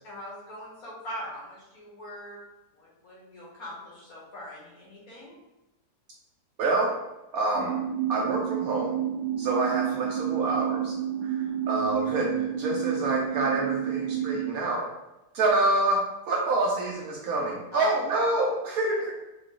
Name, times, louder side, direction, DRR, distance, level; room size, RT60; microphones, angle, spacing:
voice 1, 0.0-2.4 2.7-5.3 17.7-17.9, equal, 60° left, -5 dB, 1.5 m, -41 dB
voice 2, 6.6-7.0 7.3-7.8 8.1-8.9 9.4-10.9 11.2-14.9 15.3-19.1, right 2 dB, 70° right, -1 dB, 0.9 m, -27 dB
sound 1, 7.5-14.4, right 10 dB, 30° right, 0.5 m, -29 dB
4.0 x 2.2 x 3.6 m, 0.98 s
omnidirectional pair, 1.8 m